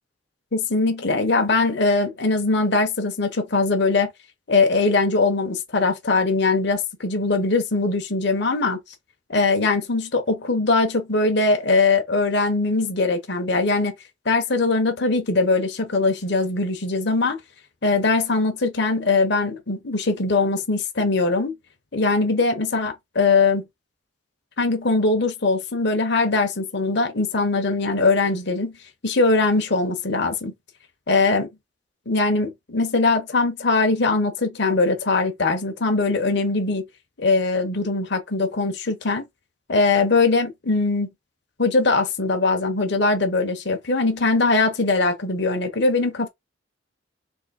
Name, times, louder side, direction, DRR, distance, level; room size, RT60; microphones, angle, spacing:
voice 1, 0.5-4.1 4.5-8.8 9.3-13.9 14.2-17.4 17.8-21.5 21.9-23.6 24.6-28.7 29.0-30.5 31.1-31.5 32.1-36.8 37.2-39.2 39.7-41.1 41.6-46.3, left 3 dB, 60° left, 1.1 m, -21 dB
3.7 x 2.9 x 4.3 m
head